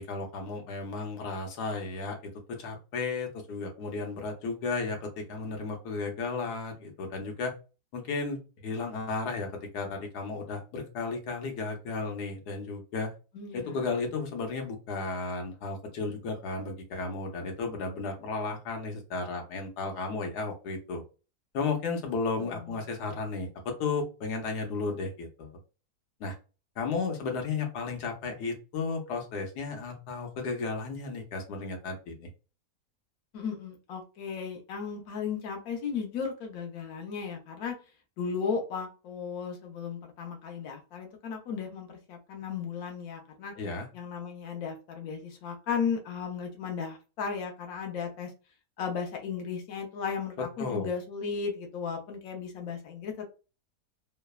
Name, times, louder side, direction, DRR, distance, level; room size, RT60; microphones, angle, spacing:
voice 1, 0.0-7.5 7.9-13.1 13.5-21.0 21.5-25.6 26.2-26.4 26.8-32.3 43.6-43.9 50.4-50.9, left 4 dB, 90° left, 2 dB, 1.3 m, -34 dB
voice 2, 13.3-13.9 22.4-22.8 33.3-37.8 38.2-43.5 43.9-48.3 48.8-53.2, left 6 dB, 70° left, 2 dB, 1.1 m, -35 dB
3.2 x 2.0 x 2.2 m, 0.32 s
omnidirectional pair, 1.6 m